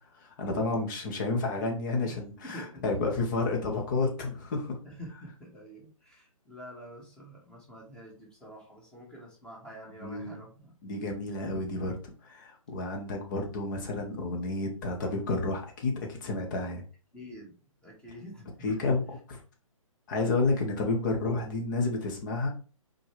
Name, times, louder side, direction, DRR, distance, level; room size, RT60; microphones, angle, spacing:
voice 1, 0.1-4.8 10.0-10.3 10.8-16.8 18.6-19.4 20.1-22.5, left 3 dB, 35° left, 2 dB, 2.1 m, -30 dB
voice 2, 2.4-3.1 4.8-10.8 16.6-16.7 17.1-17.6 17.8-18.9, equal, 5° left, -2 dB, 1.9 m, -47 dB
5.9 x 4.7 x 3.5 m, 0.36 s
figure-of-eight pair, 140°, 18 cm